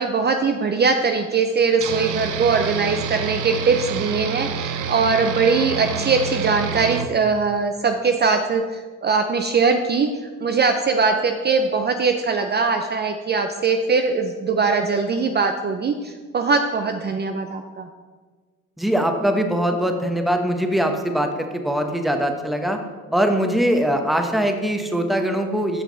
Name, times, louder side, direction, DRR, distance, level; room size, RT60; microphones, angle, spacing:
voice 1, 0.0-10.1 10.4-17.9, right 4 dB, 35° right, 6 dB, 0.5 m, -21 dB
sound 1, 1.8-7.1, right 6 dB, 85° right, 0.6 m, -28 dB
voice 2, 18.8-22.8 23.1-25.8, equal, ahead, 5 dB, 0.8 m, -22 dB
8.4 x 5.7 x 3.9 m, 1.4 s
cardioid pair, 90°, 30 cm